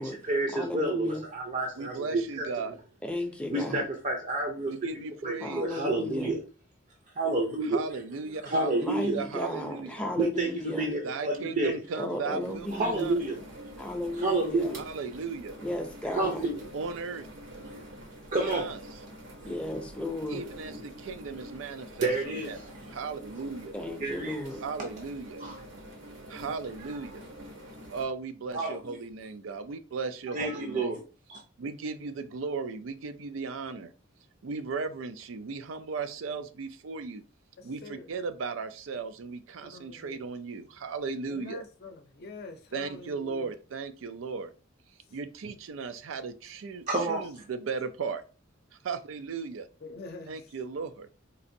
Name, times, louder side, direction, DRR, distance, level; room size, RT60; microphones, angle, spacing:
voice 1, 0.0-2.7 3.5-4.7 5.2-6.4 7.2-7.8 8.4-9.2 10.2-11.8 12.7-13.4 14.2-14.8 16.1-16.6 17.7-17.8 18.3-18.7 22.0-22.7 24.0-24.4 25.4-25.6 26.9-27.0 28.5-28.9 30.3-31.0 31.3-31.4 46.9-47.2, right 2 dB, 40° right, 0.5 m, -29 dB
voice 2, 0.5-1.2 3.0-3.8 5.4-6.4 8.8-10.9 12.0-13.1 13.8-14.8 15.6-16.5 19.4-20.5 23.7-24.6, left 1 dB, 5° left, 0.5 m, -34 dB
voice 3, 1.8-2.8 4.7-5.8 7.7-9.9 11.0-13.1 14.8-15.6 16.7-17.3 18.4-18.8 20.3-22.6 22.9-23.8 24.6-25.4 26.3-27.2 27.9-30.9 31.6-33.9 34.4-37.2 37.6-41.6 42.7-44.5 45.1-48.2 48.8-49.7 50.3-51.1, right 4 dB, 90° right, 0.4 m, -36 dB
sound 1, 12.4-28.0, equal, 65° right, 0.8 m, -46 dB
voice 4, 37.6-38.1 39.6-40.3 41.3-43.5 49.8-50.4, left 3 dB, 55° left, 0.5 m, -45 dB
4.0 x 2.5 x 2.6 m
head